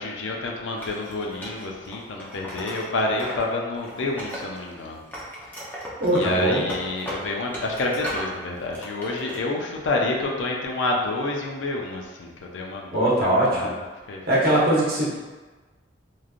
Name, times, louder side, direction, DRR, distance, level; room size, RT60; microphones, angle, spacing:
voice 1, 0.0-5.0 6.1-13.7 14.1-14.2 14.5-14.6, left 2 dB, 75° left, 0 dB, 0.5 m, -28 dB
Wood, 0.8-3.5 3.8-4.8 5.1-8.3 8.7-9.4, equal, 10° left, 0.5 m, -36 dB
voice 2, 6.0-6.7 12.9-13.7 14.3-15.2, right 1 dB, 50° right, -7 dB, 0.9 m, -21 dB
3.1 x 2.5 x 2.4 m, 1.3 s
head